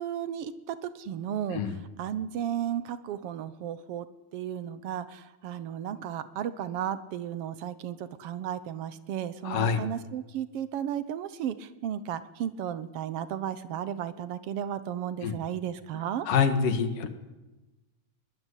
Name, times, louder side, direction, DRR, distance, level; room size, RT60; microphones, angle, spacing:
voice 1, 0.0-4.1 4.3-16.3, right 10 dB, 80° right, 14 dB, 1.3 m, -34 dB
voice 2, 9.4-9.9 15.2-15.3 16.3-17.1, left 6 dB, 75° left, 9 dB, 3.3 m, -26 dB
21.5 x 19.5 x 9.9 m, 1.1 s
omnidirectional pair, 3.9 m